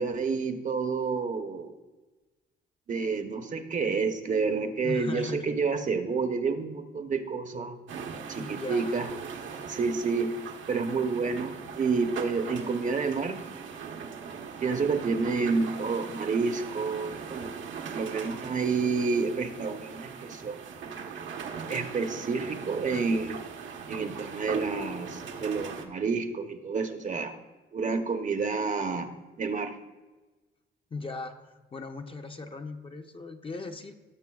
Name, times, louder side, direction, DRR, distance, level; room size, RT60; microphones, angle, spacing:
voice 1, 0.0-1.8 2.9-7.8 8.3-9.0 9.7-10.3 10.7-13.4 14.6-17.5 17.9-20.6 21.7-23.4 23.9-27.3 27.7-29.1 29.4-29.7, right 4 dB, 40° right, 7 dB, 0.8 m, -29 dB
voice 2, 4.8-5.5 8.4-9.0 30.9-33.9, left 3 dB, 25° left, 5 dB, 0.7 m, -38 dB
sound 1, 7.9-25.8, right 6 dB, 70° right, 1.0 m, -40 dB
16.5 x 6.7 x 2.3 m, 1.2 s
cardioid pair, 90°, 20 cm